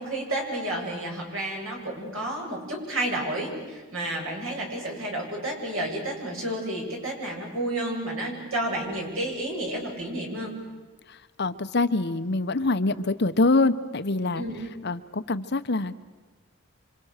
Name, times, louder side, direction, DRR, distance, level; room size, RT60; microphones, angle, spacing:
voice 1, 0.0-10.6 14.3-14.6, right 1 dB, 75° right, -1 dB, 7.9 m, -31 dB
voice 2, 11.1-14.4 14.8-16.0, left 2 dB, 50° left, 11 dB, 0.9 m, -25 dB
28.0 x 26.0 x 6.6 m, 1.3 s
head